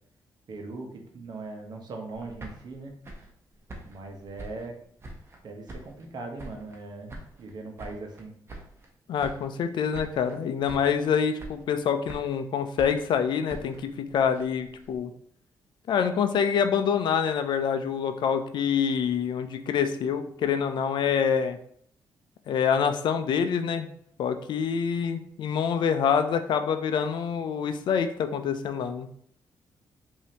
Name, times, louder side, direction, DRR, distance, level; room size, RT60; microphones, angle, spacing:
voice 1, 0.5-2.9 3.8-4.7 5.4-8.3, right 3 dB, 60° right, 3 dB, 0.9 m, -40 dB
sound 1, 2.1-5.4 5.7-6.8 7.1-8.9 9.2-9.7 9.9-10.4 10.6-11.1 11.4-12.4 12.8-15.0, right 1 dB, 35° right, 0.9 m, -45 dB
voice 2, 9.1-15.1 15.9-21.6 22.5-23.9 24.2-29.1, left 7 dB, 75° left, 8 dB, 0.4 m, -26 dB
5.0 x 2.8 x 2.8 m, 0.63 s
cardioid pair, 90°, 8 cm